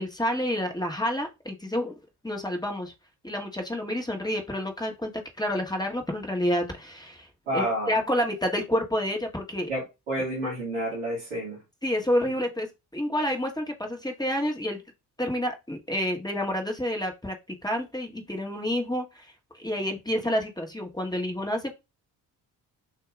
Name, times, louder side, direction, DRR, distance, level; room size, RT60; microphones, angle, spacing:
voice 1, 0.0-1.9 2.2-2.9 3.2-7.3 7.5-9.7 11.8-14.8 15.2-21.7, equal, 10° left, 2 dB, 1.3 m, -29 dB
voice 2, 7.5-8.0 9.7-11.6, right 1 dB, 80° right, -7 dB, 2.5 m, -30 dB
6.8 x 2.7 x 2.5 m, 0.25 s
hypercardioid pair, 45°, 47 cm